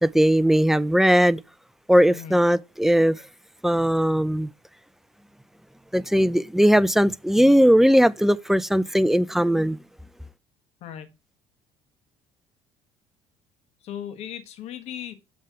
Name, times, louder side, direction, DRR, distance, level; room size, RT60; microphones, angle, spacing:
voice 1, 0.0-1.4 1.9-3.2 3.6-4.5 5.9-9.8, equal, 5° right, 0.4 m, -19 dB
voice 2, 10.8-11.2 13.8-15.2, left 10 dB, 65° left, 1.5 m, -37 dB
7.4 x 3.4 x 5.6 m
supercardioid pair, 85°, 12 cm